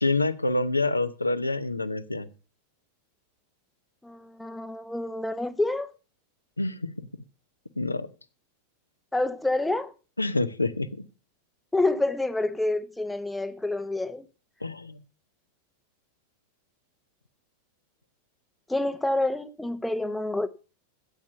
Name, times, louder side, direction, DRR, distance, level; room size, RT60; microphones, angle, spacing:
voice 1, 0.0-2.3 6.6-6.9 7.8-8.1 10.2-11.0 14.6-15.0, left 2 dB, 85° left, 0.8 m, -27 dB
voice 2, 4.0-5.9 9.1-9.9 11.7-14.3 18.7-20.5, left 2 dB, 5° left, 1.0 m, -28 dB
12.5 x 8.7 x 6.7 m
figure-of-eight pair, 90°, 0 cm